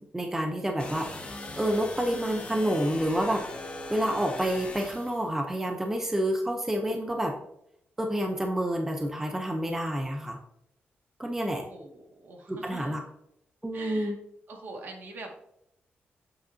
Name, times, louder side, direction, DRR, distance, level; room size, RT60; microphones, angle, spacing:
voice 1, 0.1-3.4 3.9-7.3 8.0-10.4 11.2-11.6 12.5-13.0 13.6-14.1, equal, 10° right, 3 dB, 0.7 m, -29 dB
sound 1, 0.8-5.2, left 2 dB, 30° left, 1.8 m, -40 dB
voice 2, 11.7-13.0 13.7-14.2 14.5-15.4, right 3 dB, 55° right, 1 dB, 2.0 m, -44 dB
8.7 x 7.9 x 2.8 m, 0.78 s
wide cardioid pair, 160°, 4 cm